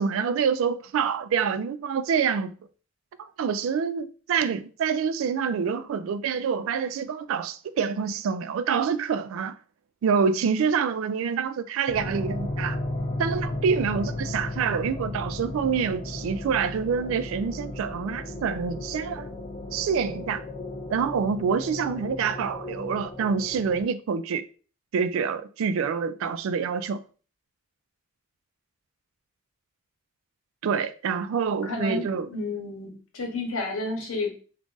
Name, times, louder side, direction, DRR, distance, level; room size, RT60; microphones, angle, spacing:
voice 1, 0.0-2.5 3.2-9.6 10.0-12.8 13.2-19.3 19.7-20.4 20.9-24.4 24.9-27.0 30.6-32.3, right 6 dB, 80° right, 0.3 m, -26 dB
sound 1, 11.9-23.9, left 1 dB, 25° left, 0.4 m, -34 dB
voice 2, 31.6-34.3, left 3 dB, 90° left, 0.9 m, -31 dB
2.5 x 2.3 x 3.7 m
head